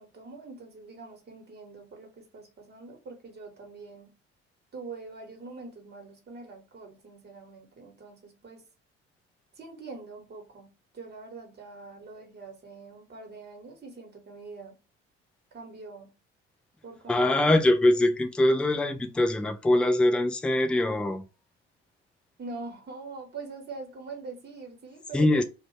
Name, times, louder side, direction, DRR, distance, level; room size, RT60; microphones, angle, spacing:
voice 1, 0.0-4.1 4.7-8.6 9.5-14.8 15.5-16.1 16.8-17.4 22.4-25.4, right 3 dB, 30° right, 1.1 m, -44 dB
voice 2, 17.1-21.3 25.1-25.4, left 1 dB, 5° left, 0.3 m, -23 dB
2.5 x 2.2 x 3.1 m
figure-of-eight pair, 50°, 33 cm